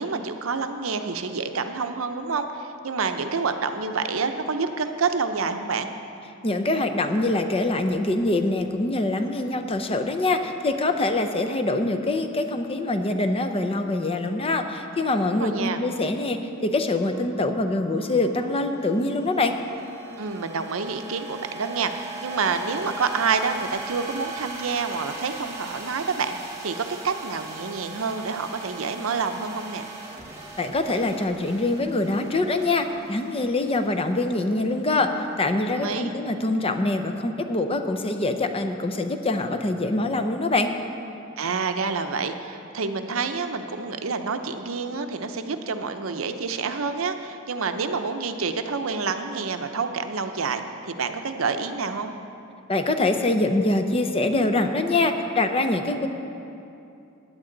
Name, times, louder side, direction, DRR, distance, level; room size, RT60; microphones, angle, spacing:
voice 1, 0.0-5.9 15.2-15.8 20.2-29.8 35.7-36.1 41.4-52.1, right 4 dB, 80° right, 7 dB, 0.7 m, -28 dB
voice 2, 6.4-19.6 30.6-40.7 52.7-56.1, left 2 dB, 25° left, 7 dB, 0.6 m, -24 dB
sound 1, 16.9-35.2, right 3 dB, 15° right, 1.4 m, -40 dB
16.0 x 9.7 x 3.9 m, 2.7 s
head